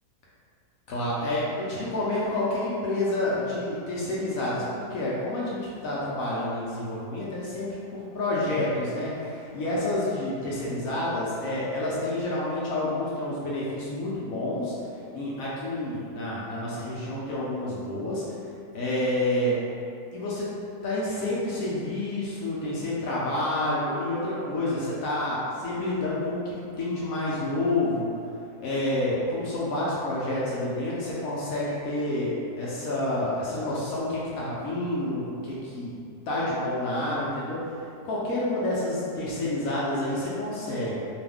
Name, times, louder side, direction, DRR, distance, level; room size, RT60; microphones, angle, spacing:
voice 1, 0.9-14.7 15.1-18.2 18.7-19.6 20.1-20.5 20.8-28.1 28.6-36.0 36.3-37.7 38.0-41.0, left 1 dB, 70° left, -7 dB, 0.9 m, -29 dB
2.7 x 2.4 x 3.4 m, 2.5 s
omnidirectional pair, 1.7 m